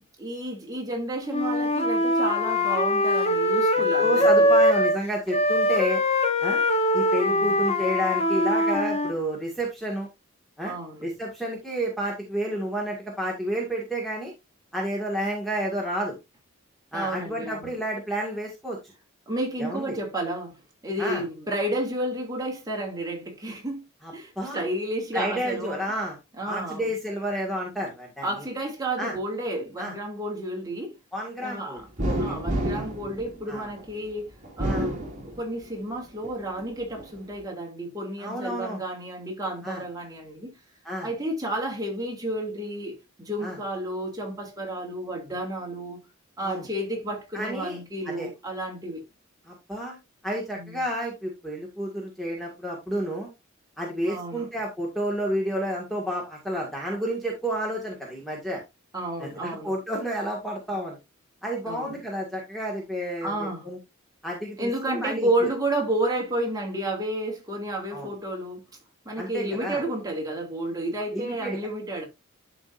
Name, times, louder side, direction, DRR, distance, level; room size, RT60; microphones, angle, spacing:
voice 1, 0.2-4.5 7.3-7.8 10.6-11.0 16.9-17.7 19.3-20.6 20.8-23.8 24.1-25.8 26.4-26.9 28.2-31.0 31.4-31.8 32.2-34.3 34.6-40.5 41.0-46.0 46.4-49.0 50.6-50.9 54.0-54.5 58.9-59.7 61.6-62.0 63.2-63.7 64.6-68.6 69.0-72.0, right 1 dB, 20° right, 2.7 m, -31 dB
Wind instrument woodwind instrument, 1.3-5.0 5.3-9.1, left 1 dB, 30° left, 1.1 m, -22 dB
voice 2, 3.8-6.0 6.4-6.6 6.9-10.1 10.6-10.7 11.0-14.3 14.7-16.2 16.9-18.8 19.6-20.0 21.0-21.2 24.0-24.6 25.1-26.2 26.4-28.4 29.0-29.2 29.8-29.9 31.1-32.4 32.7-32.8 33.5-33.7 34.6-34.9 38.2-38.8 39.6-39.8 40.8-41.1 43.4-43.6 46.4-46.7 47.3-47.8 48.1-48.3 49.5-50.0 50.2-53.3 53.8-58.6 59.2-61.0 61.4-63.8 64.2-65.3 67.9-68.1 69.2-69.8 71.1-71.6, equal, ahead, 1.9 m, -30 dB
sound 1, 32.0-33.9 34.4-35.8 36.2-37.1, right 1 dB, 35° right, 2.8 m, -29 dB
12.0 x 5.1 x 2.6 m
head